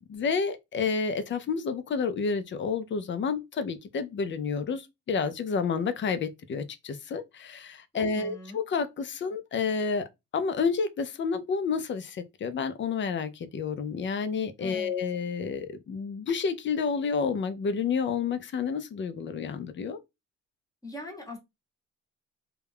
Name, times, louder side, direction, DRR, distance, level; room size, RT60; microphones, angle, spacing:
voice 1, 0.0-10.1 10.3-20.0, left 5 dB, 40° left, 0.5 m, -30 dB
voice 2, 7.9-8.6 14.6-14.9 20.8-21.4, left 2 dB, 10° left, 0.9 m, -41 dB
2.3 x 2.2 x 3.4 m
cardioid pair, 90°, 30 cm